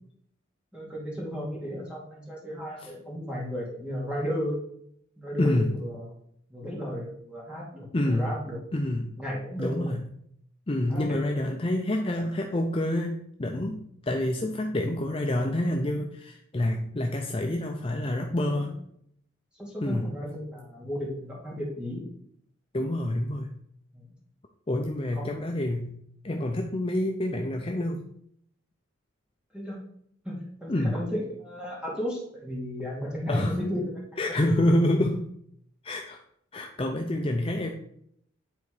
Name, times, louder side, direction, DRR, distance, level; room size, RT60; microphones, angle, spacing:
voice 1, 0.7-4.6 5.2-6.1 6.5-8.6 9.2-9.9 10.9-11.2 18.5-18.7 19.6-22.0 23.9-24.1 25.1-25.4 29.5-29.8 30.2-33.8 34.3-34.4, equal, 5° right, -5 dB, 2.3 m, -34 dB
voice 2, 5.4-5.8 7.9-8.4 8.7-9.2 9.6-10.0 10.7-18.8 19.8-20.1 22.7-23.5 24.7-25.9 26.2-28.1 30.7-31.0 33.3-33.5 34.2-35.3 35.8-36.2 36.5-37.7, left 1 dB, 25° left, 2 dB, 0.5 m, -27 dB
9.8 x 4.0 x 4.9 m, 0.70 s
head